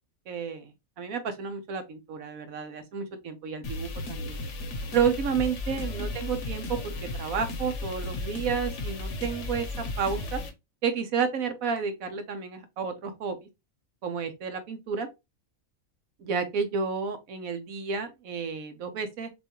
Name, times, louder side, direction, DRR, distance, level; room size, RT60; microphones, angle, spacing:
voice 1, 0.3-4.4 4.9-10.4 10.8-13.4 14.0-15.1 16.2-19.3, right 6 dB, 75° right, 1.2 m, -31 dB
sound 1, 3.6-10.5, left 2 dB, 60° left, 1.1 m, -34 dB
6.6 x 2.4 x 3.0 m
omnidirectional pair, 1.5 m